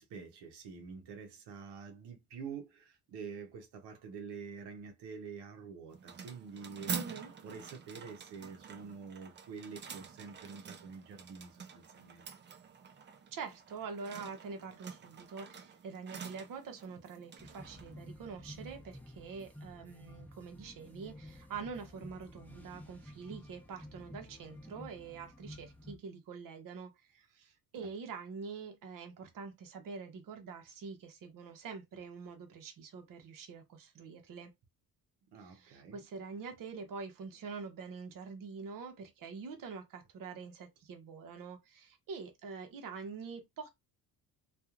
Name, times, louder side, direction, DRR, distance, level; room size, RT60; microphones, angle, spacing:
voice 1, 0.0-7.0 7.4-12.3 27.8-27.9 35.3-36.0, right 5 dB, 90° right, 0.8 m, -47 dB
sound 1, 5.9-19.0, right 6 dB, 30° right, 0.4 m, -47 dB
voice 2, 6.9-7.3 13.3-34.5 35.4-43.7, right 5 dB, 55° right, 0.8 m, -45 dB
sound 2, 17.4-26.0, equal, 5° left, 0.8 m, -52 dB
2.9 x 2.4 x 2.4 m
cardioid pair, 110°, 39 cm